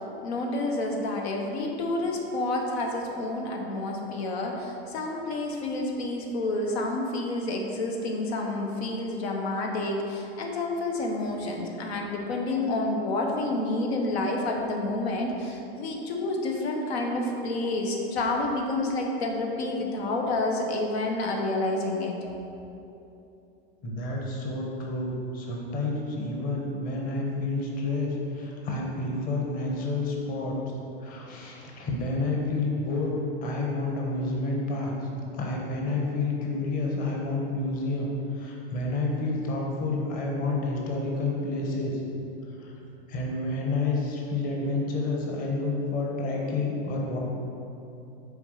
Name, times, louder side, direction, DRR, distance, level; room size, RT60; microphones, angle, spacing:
voice 1, 0.2-22.1, left 2 dB, 80° left, 1 dB, 1.3 m, -29 dB
voice 2, 23.8-30.5 31.0-34.9 35.3-42.0 42.5-42.7 43.1-47.2, left 2 dB, 25° left, -1 dB, 1.1 m, -29 dB
7.1 x 4.5 x 6.5 m, 2.8 s
supercardioid pair, 150°, 31 cm